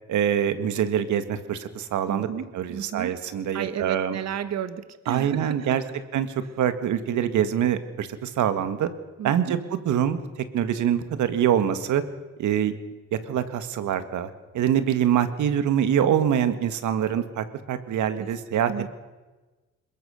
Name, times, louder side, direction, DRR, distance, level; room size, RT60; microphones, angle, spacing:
voice 1, 0.1-2.3 2.5-4.2 5.1-5.8 6.1-8.9 9.2-9.6 9.9-10.2 10.5-12.0 12.4-12.7 13.1-14.3 14.5-18.7, right 9 dB, 75° right, 10 dB, 1.9 m, -24 dB
voice 2, 2.1-3.2 3.5-6.0 9.2-9.6 18.2-18.3 18.7-18.9, right 9 dB, 60° right, 13 dB, 1.3 m, -33 dB
22.5 x 20.5 x 6.5 m, 1.2 s
cardioid pair, 90°, 30 cm